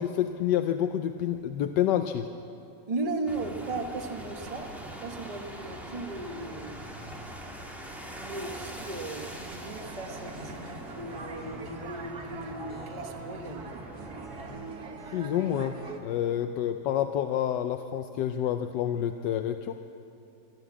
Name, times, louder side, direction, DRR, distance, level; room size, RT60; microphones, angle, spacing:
voice 1, 0.0-2.3 15.1-19.7, left 10 dB, 70° left, 8 dB, 1.1 m, -28 dB
voice 2, 2.9-4.7 5.0-6.9 7.7-13.7 16.2-16.4, right 3 dB, 25° right, 3 dB, 1.0 m, -37 dB
sound 1, 3.3-14.7, equal, ahead, 2.5 m, -43 dB
sound 2, 4.5-6.3, right 6 dB, 90° right, 2.0 m, -52 dB
sound 3, 9.6-16.0, right 3 dB, 50° right, 2.0 m, -42 dB
22.5 x 13.5 x 8.5 m, 2.8 s
omnidirectional pair, 2.2 m